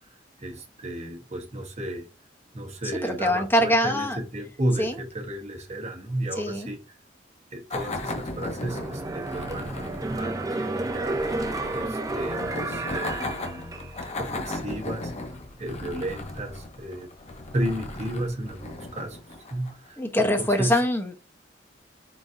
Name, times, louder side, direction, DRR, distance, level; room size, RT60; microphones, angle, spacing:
voice 1, 0.4-2.1 2.5-6.8 7.5-9.7 10.1-11.2 11.7-13.7 14.2-15.1 15.6-17.1 17.5-19.2 19.5-20.8, right 1 dB, 40° right, 1.1 m, -33 dB
voice 2, 3.0-4.2 4.8-4.9 6.4-6.7 20.0-21.2, left 1 dB, 10° left, 0.8 m, -23 dB
sound 1, 7.7-19.9, left 2 dB, 40° left, 0.8 m, -36 dB
sound 2, 8.6-14.2 14.6-14.7, right 2 dB, 20° right, 0.5 m, -31 dB
4.1 x 4.0 x 2.5 m
head